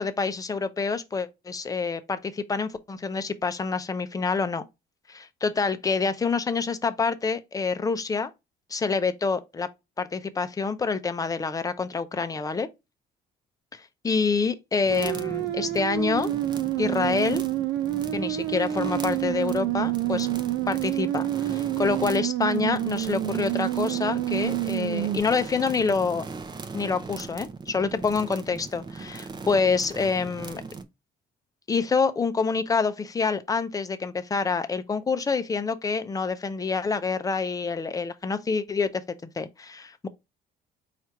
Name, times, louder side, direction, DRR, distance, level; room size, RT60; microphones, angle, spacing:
voice 1, 0.0-4.6 5.1-8.3 8.7-9.7 10.0-12.7 14.0-16.3 16.8-17.4 18.1-20.3 20.7-26.3 26.7-30.6 31.7-40.1, left 4 dB, 20° left, 0.6 m, -27 dB
sound 1, 14.8-30.8, right 4 dB, 25° right, 0.6 m, -39 dB
sound 2, 14.9-25.2, right 14 dB, 85° right, 0.6 m, -28 dB
4.4 x 2.5 x 4.3 m
cardioid pair, 110°, 17 cm